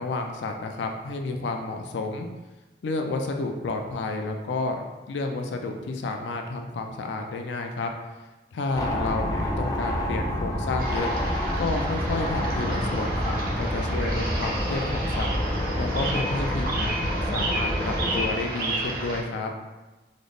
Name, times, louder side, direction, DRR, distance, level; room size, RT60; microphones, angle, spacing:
voice 1, 0.0-2.3 2.8-7.9 8.5-11.1 11.6-15.3 15.8-19.5, left 3 dB, 90° left, 3 dB, 0.4 m, -31 dB
sound 1, 8.7-18.3, equal, 20° left, 0.3 m, -28 dB
sound 2, 10.8-19.2, right 2 dB, 50° right, 0.6 m, -32 dB
3.9 x 2.0 x 3.3 m, 1.1 s
head